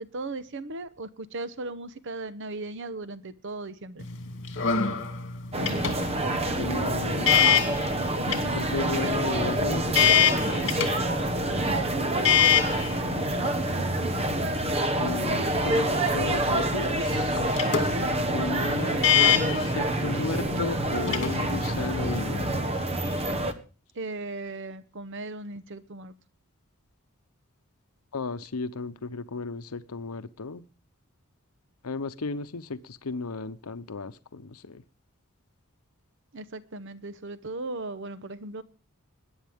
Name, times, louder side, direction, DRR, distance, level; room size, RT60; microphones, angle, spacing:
voice 1, 0.0-4.1 11.6-12.7 23.9-26.1 36.3-38.6, right 2 dB, 55° right, 13 dB, 0.9 m, -37 dB
sound 1, 4.0-22.6, left 7 dB, 55° left, 2.7 m, -28 dB
sound 2, 5.5-23.5, right 1 dB, 30° right, 1.2 m, -27 dB
voice 2, 6.6-7.8 8.4-10.7 15.0-17.4 18.3-22.5 28.1-30.6 31.8-34.8, left 4 dB, 90° left, 11 dB, 0.8 m, -34 dB
21.0 x 10.0 x 3.5 m, 0.36 s
head